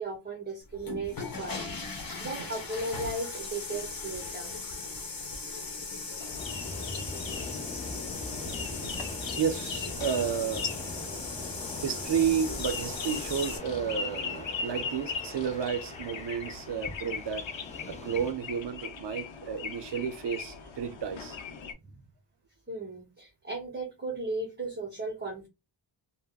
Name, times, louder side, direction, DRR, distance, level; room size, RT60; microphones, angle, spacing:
voice 1, 0.0-1.6 1.9-4.5 21.8-22.0 22.7-25.5, right 2 dB, 25° right, 0.8 m, -36 dB
sound 1, 0.7-13.6, left 4 dB, 50° left, 0.9 m, -38 dB
sound 2, 6.2-21.7, left 5 dB, 90° left, 0.6 m, -40 dB
sound 3, 6.4-18.3, left 2 dB, 15° left, 0.5 m, -42 dB
voice 2, 9.4-10.7 11.8-17.4 17.9-21.4, right 7 dB, 70° right, 0.5 m, -31 dB
3.4 x 2.0 x 2.2 m
wide cardioid pair, 90°, 44 cm